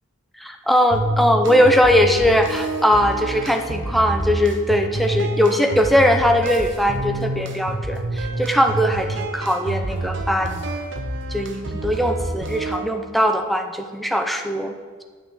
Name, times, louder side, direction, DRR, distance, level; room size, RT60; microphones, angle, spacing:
voice 1, 0.4-10.6 11.3-14.7, equal, ahead, 5 dB, 0.7 m, -20 dB
sound 1, 0.9-12.9, right 1 dB, 60° right, 1.0 m, -28 dB
8.8 x 6.5 x 7.4 m, 1.5 s
head